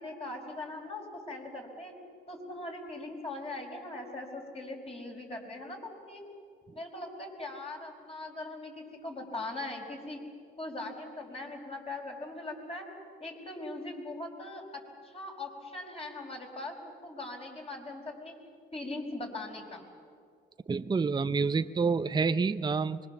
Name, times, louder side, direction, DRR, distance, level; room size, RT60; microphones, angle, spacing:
voice 1, 0.0-1.9 2.3-6.2 6.7-10.2 10.6-12.9 13.2-18.3 18.7-19.8, left 2 dB, 30° left, 1 dB, 5.2 m, -40 dB
voice 2, 20.7-23.0, right 4 dB, 20° right, 11 dB, 0.6 m, -28 dB
24.5 x 22.5 x 7.1 m, 2.2 s
cardioid pair, 90°, 20 cm